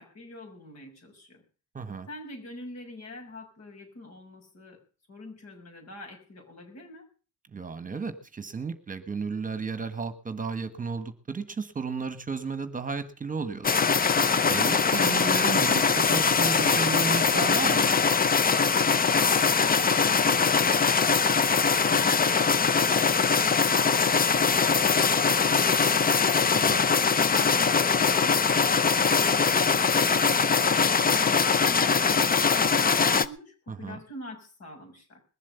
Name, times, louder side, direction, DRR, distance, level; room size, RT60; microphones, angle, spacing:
voice 1, 0.0-1.4 2.1-4.8 5.1-7.1 27.0-35.2, left 2 dB, 60° left, 2 dB, 6.5 m, -45 dB
voice 2, 1.7-2.1 7.5-13.8 14.5-17.9 26.5-26.9 33.7-34.0, right 5 dB, 25° right, 11 dB, 1.4 m, -33 dB
sound 1, 13.6-33.3, left 5 dB, 30° left, 0.7 m, -22 dB
21.0 x 7.5 x 6.9 m, 0.38 s
cardioid pair, 90°, 30 cm